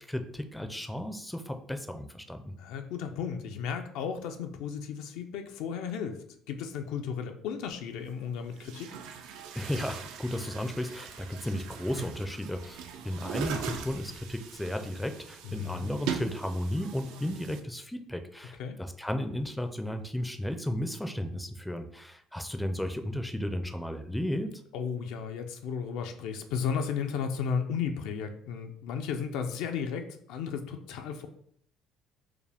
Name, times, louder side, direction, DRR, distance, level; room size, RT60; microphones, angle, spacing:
voice 1, 0.1-2.5 9.5-24.5, left 1 dB, 5° left, 7 dB, 0.4 m, -34 dB
voice 2, 2.6-8.9 15.4-15.9 18.6-18.8 24.7-31.3, left 6 dB, 80° left, 5 dB, 0.4 m, -34 dB
Chatter / Gurgling / Tap, 7.7-7.8 8.5-17.6, right 7 dB, 80° right, 0.4 m, -40 dB
4.7 x 2.2 x 3.4 m, 0.65 s
supercardioid pair, 95°, 0 cm